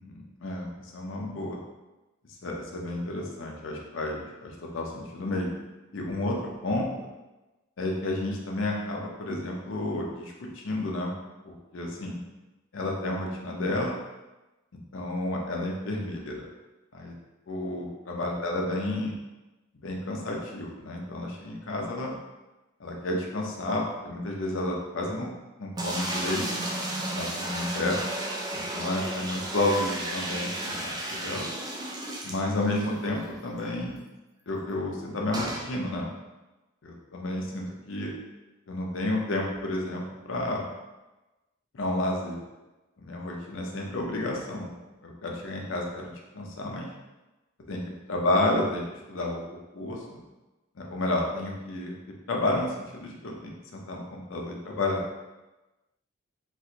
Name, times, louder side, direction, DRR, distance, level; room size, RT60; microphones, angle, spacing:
voice 1, 0.0-1.6 2.4-5.6 5.9-7.1 7.8-11.1 11.4-12.2 12.7-14.0 14.9-16.5 16.9-17.1 17.5-19.1 19.8-22.1 22.8-25.3 25.6-26.7 27.1-28.0 28.5-31.5 32.2-34.0 34.5-36.1 36.8-38.1 38.7-40.7 41.7-42.4 43.0-44.7 45.0-46.9 47.7-47.8 48.1-49.4 49.7-50.2 50.8-52.0 52.3-55.0, left 1 dB, 70° left, 0 dB, 0.6 m, -31 dB
sound 1, 25.8-32.9 33.3-33.4 33.6-33.7 35.3-35.7, right 1 dB, 20° right, 0.3 m, -33 dB
3.1 x 2.5 x 2.8 m, 1.1 s
head